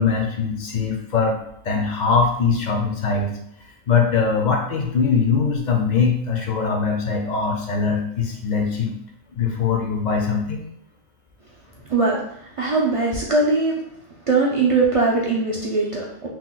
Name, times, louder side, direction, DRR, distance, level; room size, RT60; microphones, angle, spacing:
voice 1, 0.0-1.4 1.6-3.3 3.9-8.9 9.3-10.6, left 5 dB, 60° left, 2 dB, 0.5 m, -21 dB
voice 2, 11.9-12.2 12.6-13.8 14.3-16.3, right 3 dB, 60° right, -3 dB, 0.3 m, -20 dB
2.9 x 2.1 x 3.8 m, 0.75 s
omnidirectional pair, 1.2 m